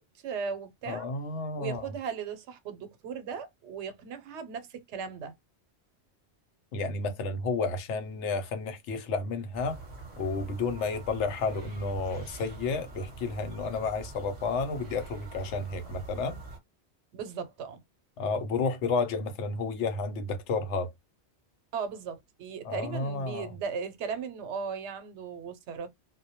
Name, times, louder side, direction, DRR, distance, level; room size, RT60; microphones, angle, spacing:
voice 1, 0.0-1.1 1.6-5.3 17.1-17.8 21.7-25.9, right 6 dB, 85° right, 0.9 m, -37 dB
voice 2, 0.9-1.8 6.7-9.8 10.2-16.4 18.2-20.9 22.6-23.5, left 4 dB, 90° left, 0.9 m, -31 dB
sound 1, 9.5-16.6, right 2 dB, 45° right, 0.7 m, -45 dB
2.1 x 2.1 x 2.7 m
omnidirectional pair, 1.2 m